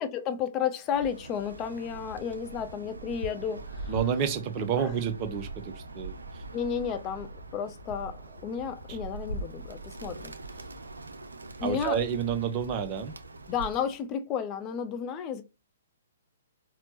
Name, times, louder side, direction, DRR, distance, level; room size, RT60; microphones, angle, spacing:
voice 1, 0.0-3.9 4.8-4.9 6.5-10.3 11.6-12.0 13.5-15.4, left 7 dB, 25° left, 0.5 m, -32 dB
Bird, 0.9-14.0, right 2 dB, 75° right, 0.4 m, -42 dB
voice 2, 3.9-6.1 8.9-9.0 11.6-13.1, right 7 dB, 30° right, 0.6 m, -29 dB
4.2 x 2.0 x 3.0 m
figure-of-eight pair, 120°, 0 cm